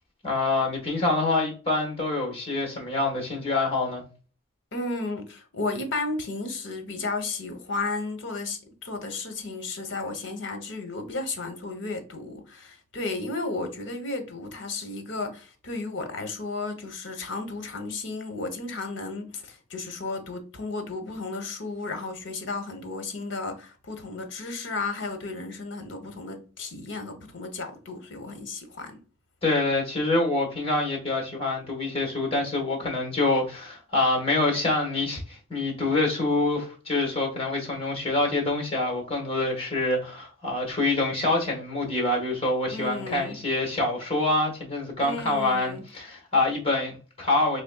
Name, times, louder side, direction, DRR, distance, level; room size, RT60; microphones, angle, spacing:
voice 1, 0.2-4.0 29.4-47.6, left 2 dB, 30° left, 1.4 m, -26 dB
voice 2, 4.7-29.0 42.7-43.4 45.0-45.8, left 3 dB, 60° left, 0.9 m, -33 dB
4.1 x 3.2 x 2.3 m
head